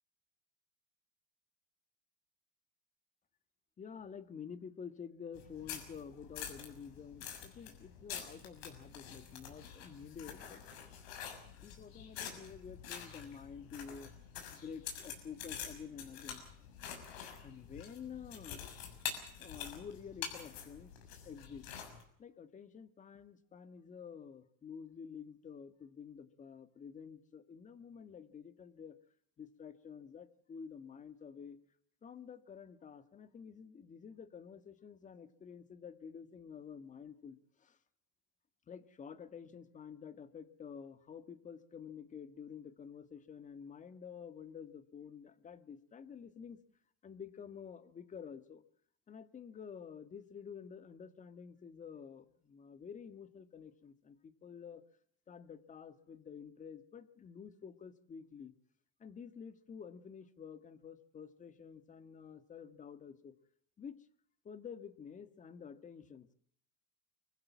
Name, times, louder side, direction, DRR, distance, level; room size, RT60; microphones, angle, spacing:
voice 1, 3.8-11.0 11.6-14.1 14.5-16.4 17.4-18.6 19.4-20.9 21.2-21.7 22.2-28.9 29.4-31.6 32.0-37.8 38.7-46.6 47.0-48.6 49.1-54.8 55.3-58.5 59.0-63.3 63.8-64.0 64.4-66.3, left 6 dB, 25° left, 11 dB, 1.8 m, -50 dB
sound 1, 5.3-22.0, left 8 dB, 85° left, 6.7 m, -47 dB
25.0 x 16.0 x 7.3 m, 0.66 s
supercardioid pair, 130°, 30 cm